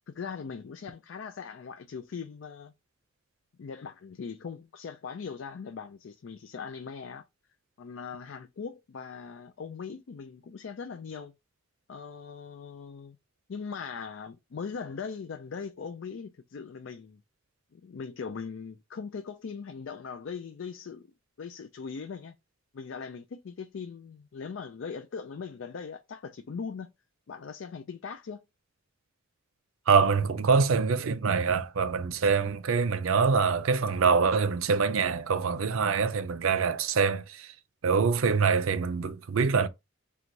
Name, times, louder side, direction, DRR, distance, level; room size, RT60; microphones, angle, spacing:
voice 1, 0.1-2.7 3.6-7.2 7.8-11.3 11.9-13.2 13.5-17.2 17.7-21.1 21.4-22.4 22.7-26.9 27.3-28.4, left 5 dB, 65° left, 0.4 m, -40 dB
voice 2, 29.9-37.5 37.8-39.7, right 5 dB, 80° right, 0.5 m, -25 dB
3.9 x 2.3 x 4.5 m
head